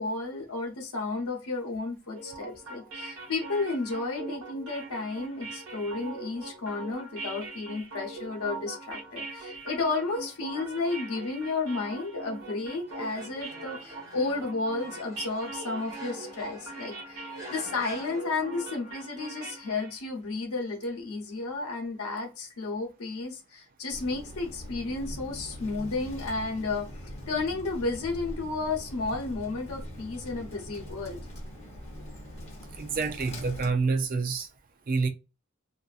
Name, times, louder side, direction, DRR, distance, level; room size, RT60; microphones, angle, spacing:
voice 1, 0.0-31.2, left 3 dB, 85° left, 0.8 m, -32 dB
sound 1, 2.2-20.0, right 3 dB, 65° right, 0.9 m, -41 dB
sound 2, 12.9-19.1, equal, 15° right, 0.8 m, -47 dB
Bird, 23.9-33.7, equal, 30° left, 0.8 m, -42 dB
voice 2, 32.8-34.5 34.9-35.1, right 4 dB, 40° right, 0.3 m, -27 dB
2.5 x 2.5 x 2.3 m
head